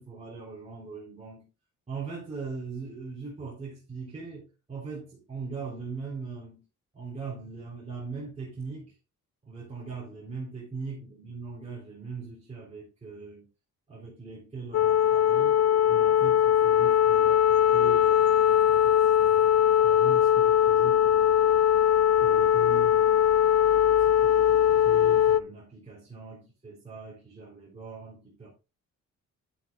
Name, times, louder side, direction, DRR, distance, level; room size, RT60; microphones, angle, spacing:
voice 1, 0.0-1.4 1.9-6.6 6.9-8.9 9.4-13.5 13.9-15.6 15.9-21.7 22.2-28.5, right 4 dB, 20° right, 3.7 m, -40 dB
sound 1, 14.7-25.4, left 10 dB, 55° left, 0.5 m, -21 dB
10.0 x 9.3 x 2.4 m
cardioid pair, 130°, 31 cm